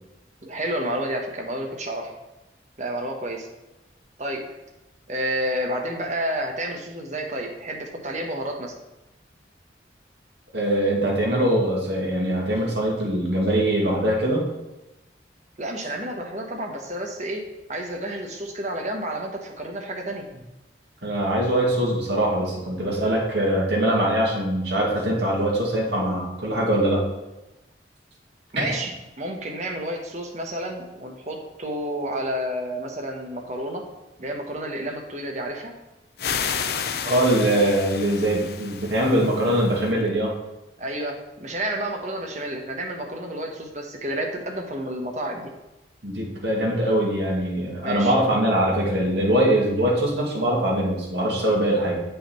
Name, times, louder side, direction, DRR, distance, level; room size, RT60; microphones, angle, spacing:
voice 1, 0.4-2.1 2.8-3.5 4.2-4.4 5.1-8.7 15.6-20.2 28.5-33.8 34.2-35.7 40.8-45.5 47.8-48.2, right 1 dB, 40° right, 2 dB, 1.2 m, -30 dB
voice 2, 10.5-14.4 21.0-27.0 28.6-28.7 37.0-40.3 46.0-52.0, right 1 dB, 70° right, -3 dB, 2.3 m, -22 dB
sound 1, 36.2-39.9, left 7 dB, 60° left, 0.5 m, -31 dB
7.5 x 5.6 x 4.4 m, 0.99 s
head